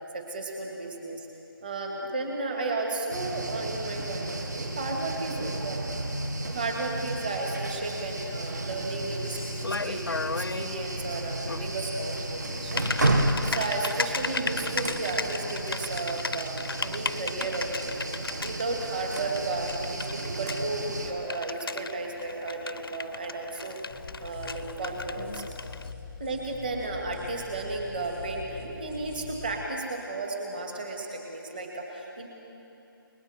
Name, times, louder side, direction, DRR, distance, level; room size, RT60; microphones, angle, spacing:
voice 1, 0.1-1.3 1.6-6.0 6.4-17.9 18.4-23.7 24.2-25.4 26.2-32.3, right 2 dB, 25° right, 0 dB, 2.3 m, -34 dB
sound 1, 3.1-21.1, right 2 dB, 50° right, 1.7 m, -33 dB
Typing, 7.8-25.9, left 4 dB, 75° left, 0.7 m, -37 dB
sound 2, 23.9-29.6, left 4 dB, 10° left, 0.9 m, -43 dB
30.0 x 20.5 x 4.5 m, 2.8 s
figure-of-eight pair, 180°, 12 cm